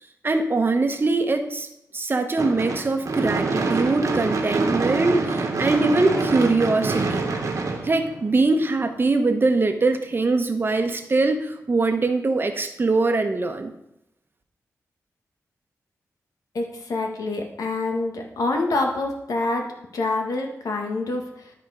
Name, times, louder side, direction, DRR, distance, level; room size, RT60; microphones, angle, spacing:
voice 1, 0.2-1.7 1.9-7.2 7.8-13.7, right 3 dB, 40° right, 7 dB, 0.9 m, -22 dB
Gunshot gunfire / Fireworks, 2.4-8.6, right 3 dB, 65° right, 1.2 m, -25 dB
voice 2, 16.5-21.5, left 2 dB, 85° left, 2 dB, 1.4 m, -26 dB
12.0 x 4.3 x 4.9 m, 0.82 s
cardioid pair, 80°, 6 cm